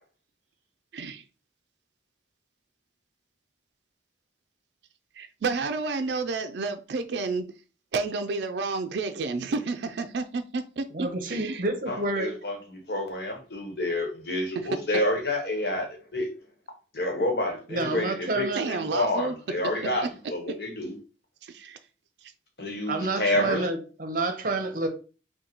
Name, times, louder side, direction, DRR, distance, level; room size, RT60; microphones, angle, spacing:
voice 1, 0.9-1.2 5.2-7.5 7.9-11.6 18.5-19.4 19.8-20.1 20.5-20.6 21.4-21.8 22.2-22.3, right 4 dB, 70° right, 0.4 m, -31 dB
voice 2, 10.9-12.5 17.7-18.7 22.9-24.9, right 2 dB, 50° right, 0.7 m, -29 dB
voice 3, 11.9-16.3 16.9-20.9 22.6-23.7, left 1 dB, 65° left, 1.2 m, -29 dB
3.9 x 2.3 x 4.3 m
head